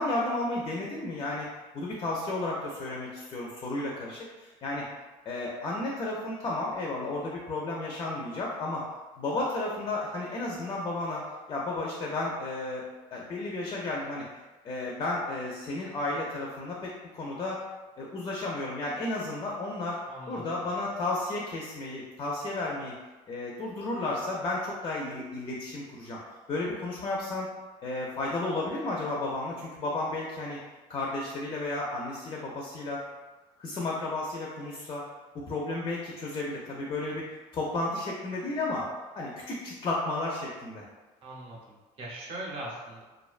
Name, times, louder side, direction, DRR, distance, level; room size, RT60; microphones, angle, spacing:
voice 1, 0.0-1.5 1.7-4.9 5.3-8.8 9.2-11.2 11.5-14.3 14.6-17.6 18.0-20.0 20.3-23.0 23.3-26.2 26.5-27.5 27.8-30.6 30.9-33.0 33.6-35.0 35.3-37.2 37.5-38.9 39.2-40.8, left 2 dB, 30° left, -3 dB, 0.4 m, -33 dB
voice 2, 20.1-20.8 41.2-43.0, right 1 dB, 40° right, -3 dB, 0.7 m, -41 dB
2.5 x 2.1 x 2.4 m, 1.2 s
cardioid pair, 130°, 15 cm